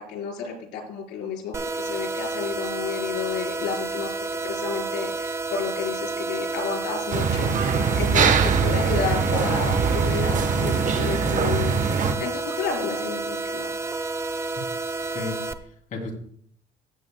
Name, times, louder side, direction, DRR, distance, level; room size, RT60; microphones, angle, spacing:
voice 1, 0.0-4.1 4.4-13.8, left 6 dB, 85° left, 1 dB, 4.5 m, -31 dB
sound 1, 1.5-15.5, right 3 dB, 15° right, 0.6 m, -30 dB
sound 2, 7.1-12.1, right 5 dB, 50° right, 1.1 m, -22 dB
voice 2, 15.0-16.1, left 3 dB, 50° left, 0 dB, 3.1 m, -35 dB
16.0 x 8.5 x 2.3 m, 0.63 s
cardioid pair, 110°, 17 cm